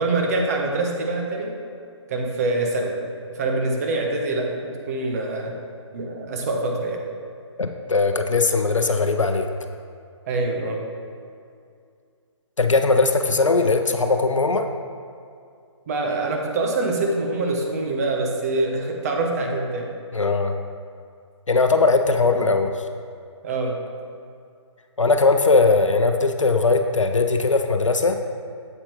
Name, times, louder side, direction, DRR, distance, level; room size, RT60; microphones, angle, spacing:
voice 1, 0.0-1.5 2.1-3.0 3.3-5.5 5.9-7.0 10.3-10.8 15.9-19.9 23.4-23.8, right 2 dB, 30° right, 1 dB, 1.0 m, -25 dB
voice 2, 7.6-9.5 12.6-14.7 20.1-20.5 21.5-22.8 25.0-28.2, left 3 dB, 85° left, 6 dB, 0.6 m, -19 dB
8.5 x 7.7 x 3.1 m, 2.4 s
figure-of-eight pair, 140°, 16 cm